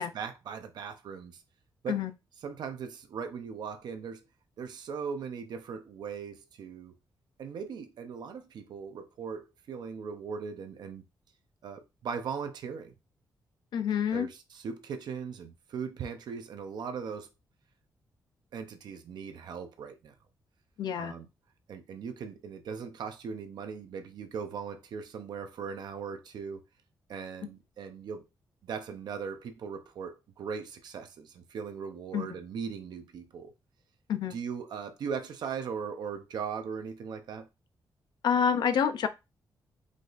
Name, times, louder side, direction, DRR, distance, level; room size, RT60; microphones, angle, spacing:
voice 1, 0.0-1.4 1.8-2.0 2.4-4.2 4.6-6.9 7.4-11.0 11.6-12.9 14.1-17.3 18.5-20.1 21.0-21.3 21.7-26.6 27.1-28.3 28.6-33.5 34.3-37.5, right 6 dB, 70° right, 0.8 m, -39 dB
voice 2, 13.7-14.3 20.8-21.1 32.1-32.3 34.1-34.3 38.2-39.1, left 7 dB, 75° left, 0.6 m, -27 dB
4.9 x 2.6 x 4.0 m
wide cardioid pair, 135°, 7 cm